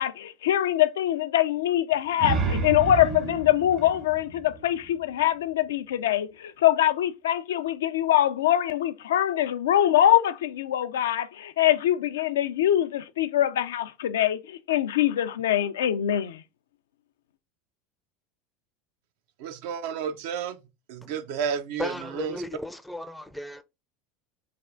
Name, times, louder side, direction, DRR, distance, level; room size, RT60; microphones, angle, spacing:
voice 1, 0.0-16.4, left 12 dB, 85° left, 0.3 m, -23 dB
sound 1, 1.9-5.4, right 4 dB, 40° right, 0.7 m, -31 dB
voice 2, 19.4-20.6 20.9-22.4, right 7 dB, 70° right, 0.4 m, -31 dB
voice 3, 21.8-23.6, left 1 dB, 5° left, 0.4 m, -35 dB
3.3 x 2.4 x 3.6 m
hypercardioid pair, 95°, 0 cm